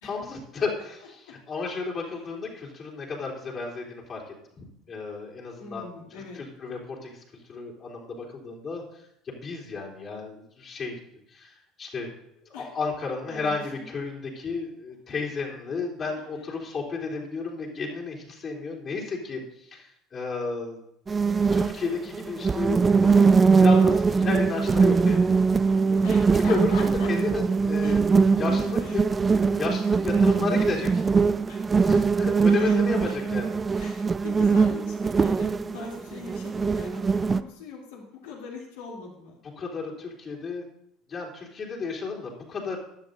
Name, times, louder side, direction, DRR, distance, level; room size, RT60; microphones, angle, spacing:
voice 1, 0.0-4.2 4.6-5.9 6.3-7.2 7.5-8.8 9.2-11.0 11.3-11.5 11.8-12.1 12.5-20.8 21.5-25.3 26.3-29.0 29.6-31.1 31.8-33.8 39.6-40.6 41.1-42.8, left 4 dB, 40° left, -4 dB, 3.4 m, -33 dB
voice 2, 5.6-6.4 12.4-12.7 13.3-13.6 21.4-21.5 26.0-27.1 27.8-29.0 31.5-31.7 32.4-33.2 33.8-39.3, left 4 dB, 75° left, -3 dB, 2.8 m, -41 dB
sound 1, 21.1-37.4, right 5 dB, 25° right, 0.4 m, -22 dB
15.0 x 10.5 x 2.6 m, 0.76 s
hypercardioid pair, 65°, 0 cm